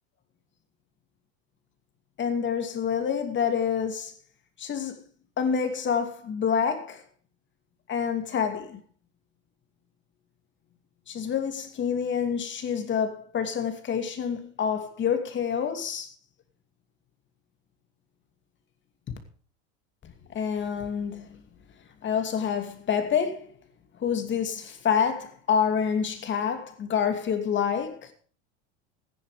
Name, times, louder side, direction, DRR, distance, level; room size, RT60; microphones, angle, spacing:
voice 1, 2.2-4.1 4.6-5.0 5.4-7.0 7.9-8.8 11.1-16.1 19.1-19.2 20.3-21.4 22.0-23.5 24.0-28.1, left 7 dB, 35° left, 2.6 m, -27 dB
15.0 x 10.5 x 5.1 m
supercardioid pair, 125°, 34 cm